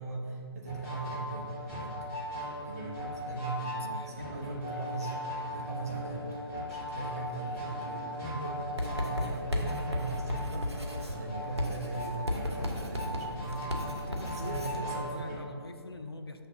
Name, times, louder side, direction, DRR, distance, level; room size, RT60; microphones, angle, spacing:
voice 1, 0.0-1.9 2.4-6.3 6.6-15.1, right 3 dB, 35° right, -1 dB, 1.0 m, -39 dB
sound 1, 0.7-15.4, left 1 dB, 15° left, 1.2 m, -39 dB
voice 2, 3.7-4.5 13.9-16.5, left 2 dB, 65° left, 7 dB, 0.6 m, -45 dB
Writing, 8.8-14.8, left 1 dB, 80° right, 1.1 m, -35 dB
6.0 x 3.4 x 5.7 m, 2.5 s
figure-of-eight pair, 145°, 14 cm